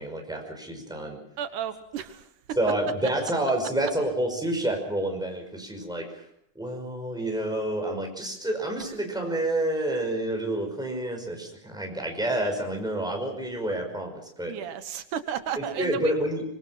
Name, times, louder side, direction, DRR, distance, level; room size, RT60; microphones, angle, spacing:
voice 1, 0.0-1.2 2.6-6.2 6.6-14.5 15.6-16.4, right 1 dB, ahead, 2 dB, 5.3 m, -29 dB
voice 2, 1.4-2.3 14.5-16.1, right 9 dB, 85° right, 10 dB, 2.7 m, -33 dB
25.5 x 22.5 x 5.8 m, 0.71 s
omnidirectional pair, 3.5 m